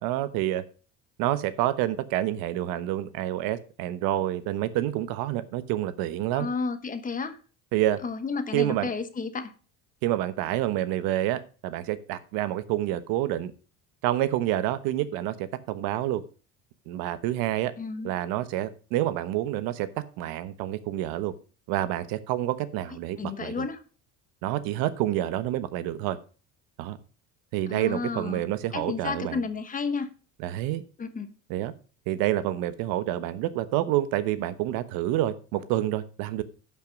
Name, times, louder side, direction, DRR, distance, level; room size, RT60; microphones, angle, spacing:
voice 1, 0.0-0.6 1.2-6.5 7.7-8.0 8.5-8.9 10.0-13.5 14.0-16.2 16.9-17.7 18.0-21.3 21.7-23.5 24.4-26.2 26.8-27.0 27.5-29.4 30.4-30.8 31.5-31.7 32.1-36.4, right 13 dB, 75° right, 1.1 m, -28 dB
voice 2, 6.3-7.4 8.0-9.5 17.8-18.1 23.2-23.8 27.7-28.4 28.7-30.1 31.0-31.3, left 4 dB, 25° left, 1.2 m, -32 dB
11.5 x 5.9 x 5.2 m
cardioid pair, 135°, 35 cm